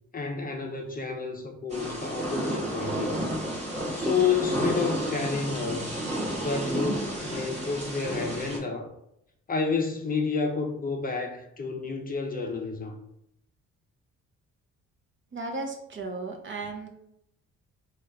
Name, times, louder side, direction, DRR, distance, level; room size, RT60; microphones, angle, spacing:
voice 1, 0.1-3.1 4.0-6.0 6.4-8.9 9.5-12.9, left 5 dB, 30° left, 0.6 m, -30 dB
Thunder / Rain, 1.7-8.6, right 1 dB, 20° right, 1.1 m, -31 dB
voice 2, 15.3-16.9, right 3 dB, 40° right, 0.7 m, -35 dB
3.3 x 2.3 x 3.4 m
cardioid pair, 90°, 30 cm